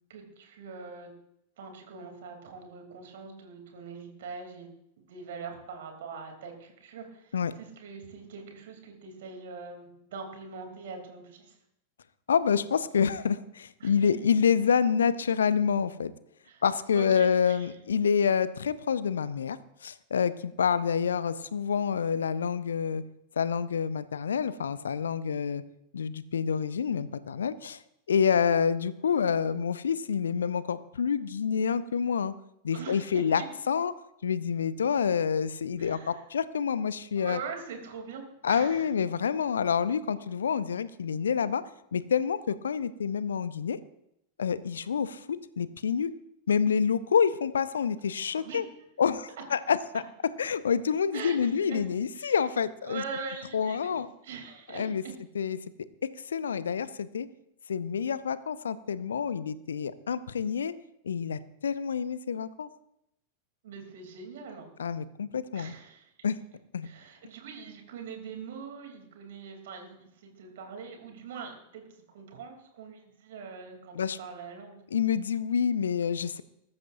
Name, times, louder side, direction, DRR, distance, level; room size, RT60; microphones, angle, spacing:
voice 1, 0.1-1.1 1.6-4.7 5.0-11.6 13.8-14.1 16.4-16.6 16.9-17.7 32.7-33.4 35.8-36.2 37.1-38.9 48.3-48.6 49.4-49.5 51.1-51.8 52.1-52.4 52.8-55.1 63.6-64.7 65.5-66.1 66.8-71.8 72.1-74.7, right 5 dB, 55° right, 3 dB, 3.2 m, -43 dB
voice 2, 12.3-16.1 16.6-19.6 19.8-23.0 23.4-25.6 25.9-27.8 28.1-32.3 32.6-33.4 33.7-33.9 34.2-37.4 38.4-41.6 41.9-43.8 44.4-45.3 45.6-46.1 46.5-48.6 49.0-50.0 50.4-53.0 53.5-54.1 54.7-55.0 55.3-55.6 56.3-57.3 57.7-60.7 61.0-62.7 64.8-65.7 66.2-66.3 66.7-66.9 73.9-74.2 74.9-76.4, left 7 dB, 70° left, 16 dB, 0.6 m, -27 dB
21.0 x 13.0 x 2.7 m, 0.77 s
figure-of-eight pair, 90°, 0 cm